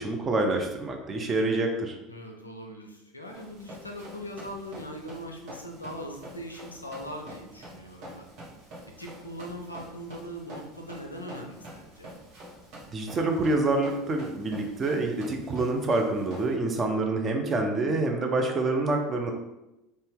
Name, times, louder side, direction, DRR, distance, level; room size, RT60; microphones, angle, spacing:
voice 1, 0.0-2.0 12.9-19.3, right 2 dB, 30° right, 3 dB, 0.5 m, -27 dB
voice 2, 2.1-8.3 9.0-12.1, equal, 90° left, 2 dB, 0.4 m, -40 dB
Run, 3.3-16.5, right 1 dB, 50° right, 1.0 m, -47 dB
2.6 x 2.1 x 3.5 m, 0.94 s
figure-of-eight pair, 70°, 0 cm